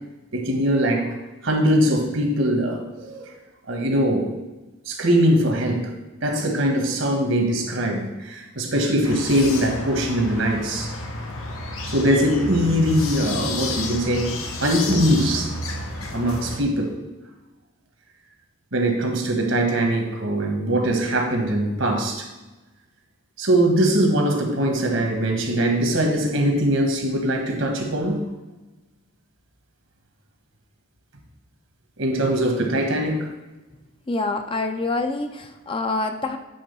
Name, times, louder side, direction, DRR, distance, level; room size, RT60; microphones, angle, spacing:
voice 1, 0.3-1.1 1.4-3.3 3.7-4.3 4.9-5.9 6.2-10.9 11.9-15.5 16.1-16.9 18.7-22.3 23.4-28.2 32.0-33.3, right 1 dB, 65° right, 3 dB, 1.4 m, -21 dB
sound 1, 9.0-16.6, left 2 dB, 85° left, 1.1 m, -31 dB
voice 2, 34.1-36.4, left 3 dB, 25° left, 6 dB, 0.4 m, -26 dB
8.6 x 3.8 x 5.4 m, 1.1 s
head